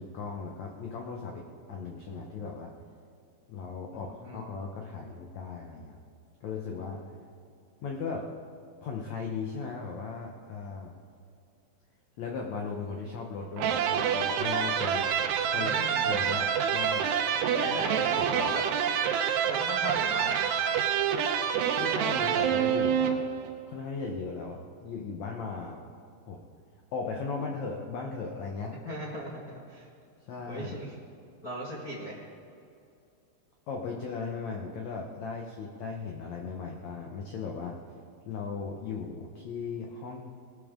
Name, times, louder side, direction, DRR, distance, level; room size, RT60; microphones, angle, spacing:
voice 1, 0.0-2.7 3.5-6.0 6.4-7.0 7.8-8.3 8.8-10.9 12.2-15.1 15.5-17.1 17.7-17.8 18.0-18.5 21.8-23.3 23.7-25.8 26.3-26.4 26.9-28.7 30.3-30.8 33.7-37.8 38.2-40.2, left 5 dB, 75° left, 1 dB, 1.6 m, -37 dB
voice 2, 3.9-4.5 15.5-16.1 17.5-18.6 19.4-20.5 28.8-29.9 30.5-30.9 31.4-32.2, equal, 45° left, -5 dB, 1.2 m, -38 dB
sound 1, 13.6-23.5, right 8 dB, 80° right, 2.9 m, -27 dB
20.5 x 12.5 x 3.8 m, 2.5 s
omnidirectional pair, 4.7 m